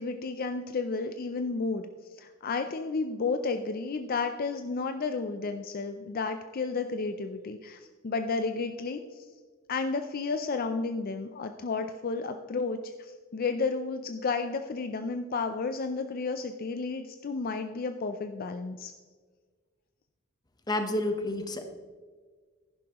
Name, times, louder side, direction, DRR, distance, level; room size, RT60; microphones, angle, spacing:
voice 1, 0.0-1.8 2.1-9.0 9.7-18.9, left 4 dB, 45° left, 8 dB, 0.5 m, -32 dB
voice 2, 20.7-21.6, left 1 dB, 20° left, 6 dB, 1.0 m, -29 dB
11.0 x 11.0 x 3.0 m, 1.5 s
head